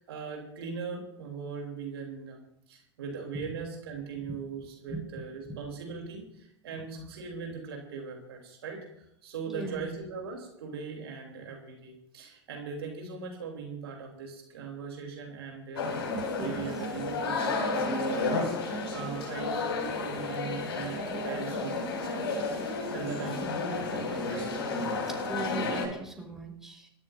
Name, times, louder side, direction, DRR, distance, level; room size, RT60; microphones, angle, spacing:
voice 1, 0.0-2.4 2.7-23.5 23.9-24.5 24.9-25.4, right 5 dB, 65° right, 1 dB, 3.4 m, -40 dB
voice 2, 9.5-9.8 16.4-16.7 23.2-23.5 25.1-26.9, right 1 dB, 5° right, 0 dB, 4.8 m, -39 dB
sound 1, 15.8-25.9, left 3 dB, 65° left, 6.4 m, -32 dB
26.5 x 13.5 x 2.7 m, 0.79 s
figure-of-eight pair, 85°, 14 cm